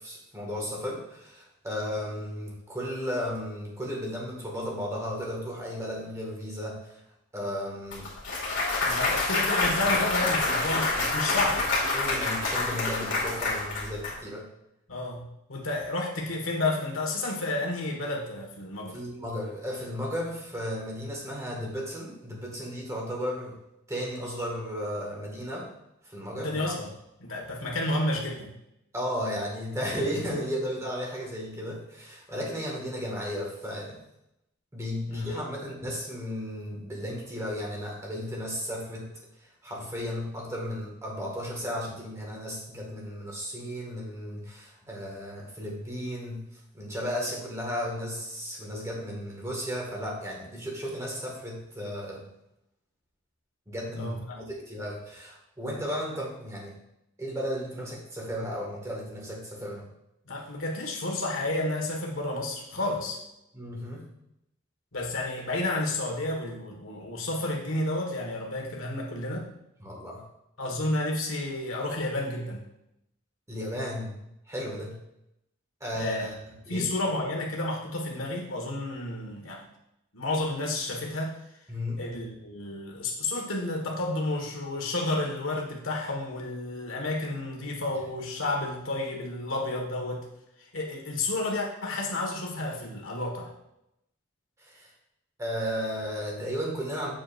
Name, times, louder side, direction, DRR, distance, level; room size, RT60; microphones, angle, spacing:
voice 1, 0.0-7.0 7.3-8.1 9.0-9.1 11.9-14.5 18.9-23.5 23.9-25.7 26.1-26.7 28.9-34.0 34.7-39.1 39.6-46.4 46.7-52.2 53.7-56.7 57.2-59.9 63.5-64.1 69.8-70.2 73.5-74.1 74.5-75.0 75.8-76.3 76.7-76.9 81.7-82.0 94.6-94.9 95.4-97.1, equal, 15° right, -2 dB, 1.9 m, -34 dB
Clapping / Cheering / Applause, 7.9-14.1, left 3 dB, 65° left, 2.2 m, -27 dB
voice 2, 8.8-11.6 14.9-19.0 26.4-26.9 27.2-28.5 35.1-35.4 54.0-54.2 60.3-63.2 64.9-69.5 70.6-72.6 75.9-76.3 76.7-79.6 80.1-81.4 82.0-90.3 90.7-93.5, left 2 dB, 80° left, 0 dB, 1.7 m, -31 dB
7.8 x 7.3 x 2.6 m, 0.83 s
head